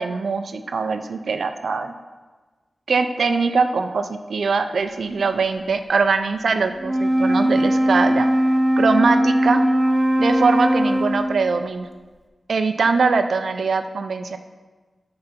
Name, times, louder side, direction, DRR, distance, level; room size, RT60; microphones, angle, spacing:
voice 1, 0.0-1.9 2.9-8.3 8.8-9.6 10.2-11.9 12.5-14.4, right 4 dB, 85° right, 8 dB, 0.5 m, -22 dB
Wind instrument woodwind instrument, 6.8-11.6, equal, 15° right, 0.8 m, -19 dB
9.1 x 3.9 x 5.8 m, 1.3 s
wide cardioid pair, 105°, 0 cm